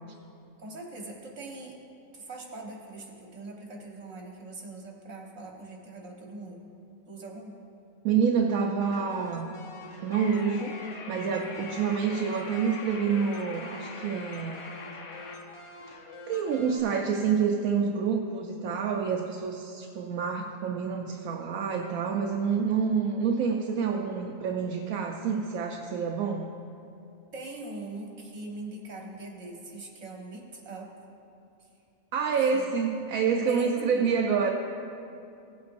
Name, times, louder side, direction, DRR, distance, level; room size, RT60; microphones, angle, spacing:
voice 1, 0.6-1.8 2.1-6.6 7.1-7.6 27.3-30.9 32.5-32.7 33.5-34.1, right 2 dB, 65° right, -1 dB, 1.7 m, -42 dB
voice 2, 8.0-9.5 10.0-10.8 11.1-14.6 16.3-26.5 32.1-34.5, right 6 dB, 80° right, 1 dB, 1.1 m, -27 dB
sound 1, 8.8-16.8, left 2 dB, 35° left, 0.5 m, -46 dB
sound 2, 10.1-15.4, left 4 dB, 85° left, 1.3 m, -43 dB
17.0 x 8.3 x 2.6 m, 2.6 s
omnidirectional pair, 1.4 m